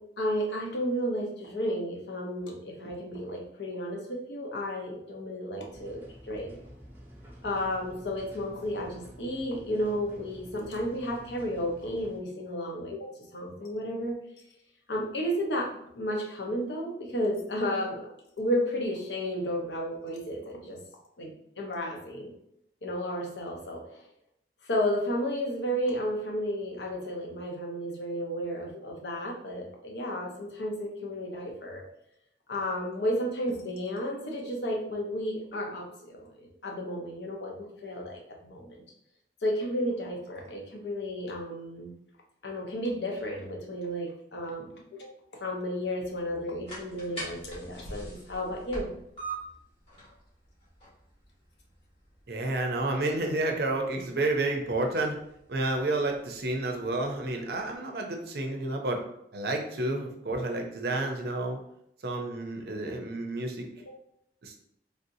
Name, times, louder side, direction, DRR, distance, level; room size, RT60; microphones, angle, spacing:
voice 1, 0.2-6.5 7.4-14.2 14.9-18.1 18.4-20.8 21.2-22.3 22.8-24.0 24.7-31.8 32.5-38.8 39.4-41.9 42.4-45.1 45.4-48.9, equal, 85° left, 0 dB, 0.8 m, -32 dB
sound 1, 5.7-12.2, equal, 10° right, 0.7 m, -50 dB
sound 2, 46.2-57.7, right 2 dB, 35° left, 1.4 m, -46 dB
voice 2, 52.3-55.2 55.5-59.0 59.3-61.6 62.0-63.7 64.4-64.6, right 2 dB, 65° right, 2 dB, 0.5 m, -30 dB
3.4 x 2.6 x 2.7 m, 0.75 s
head